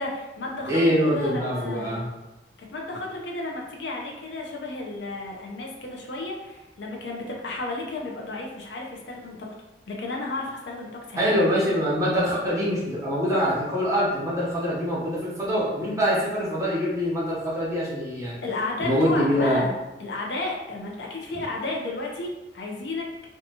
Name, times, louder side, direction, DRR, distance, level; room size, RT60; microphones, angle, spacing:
voice 1, 0.0-2.0 2.6-9.5 9.9-11.3 18.4-19.7 20.0-23.1, left 2 dB, 80° left, -1 dB, 0.5 m, -32 dB
voice 2, 0.7-2.0 11.2-18.4 18.8-19.6 21.3-21.4, equal, 20° right, -7 dB, 0.8 m, -24 dB
2.7 x 2.3 x 2.7 m, 1.0 s
head